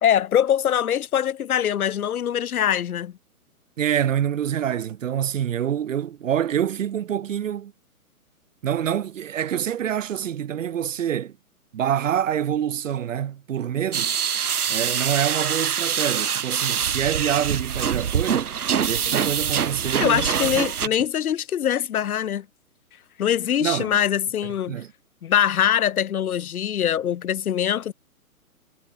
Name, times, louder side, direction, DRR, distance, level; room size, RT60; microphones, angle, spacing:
voice 1, 0.0-3.1 20.0-22.5 23.2-24.8 25.2-27.9, left 10 dB, 75° left, 0.8 m, -23 dB
voice 2, 3.8-7.7 8.6-11.4 11.7-14.2 14.7-18.5 18.8-20.6 23.6-24.0 24.7-24.9, right 9 dB, 60° right, 1.2 m, -26 dB
sound 1, 13.9-20.9, right 8 dB, 85° right, 1.0 m, -24 dB
hypercardioid pair, 140°, 44 cm